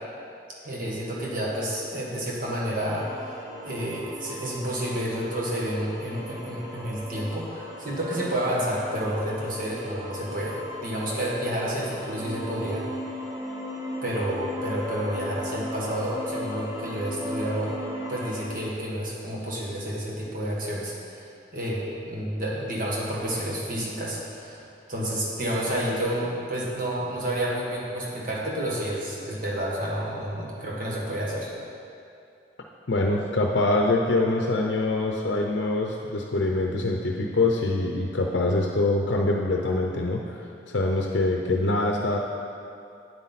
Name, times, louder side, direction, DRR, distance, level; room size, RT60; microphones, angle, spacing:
voice 1, 0.6-3.1 3.6-12.8 14.0-17.8 18.1-21.2 21.5-31.5, equal, 50° right, -4 dB, 1.7 m, -30 dB
sound 1, 2.7-18.4, left 1 dB, 15° right, 1.1 m, -37 dB
voice 2, 32.9-40.4 40.7-42.2, left 2 dB, 75° left, 1 dB, 0.6 m, -24 dB
8.9 x 8.3 x 4.1 m, 2.5 s
head